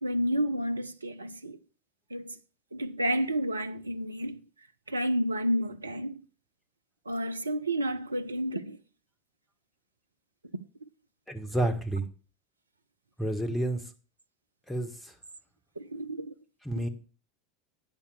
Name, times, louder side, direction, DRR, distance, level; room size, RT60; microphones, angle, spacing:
voice 1, 0.0-1.6 2.1-2.3 2.7-4.4 4.9-6.2 7.1-8.8 15.8-16.3, equal, 85° right, 0.6 m, -30 dB
voice 2, 11.3-12.0 13.2-13.8 14.7-15.1 16.6-16.9, right 1 dB, 5° left, 1.8 m, -30 dB
9.5 x 6.3 x 6.8 m
figure-of-eight pair, 80°, 0 cm